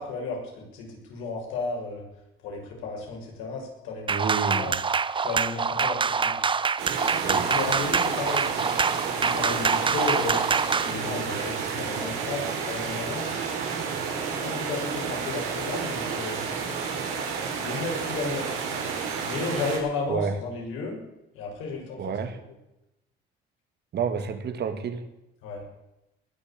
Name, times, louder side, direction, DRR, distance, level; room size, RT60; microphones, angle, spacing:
voice 1, 0.0-2.0 2.4-4.8 5.2-6.4 7.3-8.7 9.2-10.4 10.8-13.3 14.2-16.4 17.6-18.8 19.2-21.0 21.3-22.2 25.4-25.7, left 3 dB, 85° left, -1 dB, 6.4 m, -33 dB
sound 1, 4.1-10.9, right 5 dB, 25° right, 0.7 m, -25 dB
voice 2, 4.1-4.7 7.2-7.5 20.1-20.3 22.0-22.4 23.9-25.1, right 6 dB, 55° right, 9 dB, 2.1 m, -29 dB
sound 2, 6.8-19.8, right 5 dB, 85° right, 4.4 m, -31 dB
20.0 x 7.1 x 8.7 m, 0.91 s
cardioid pair, 90°, 20 cm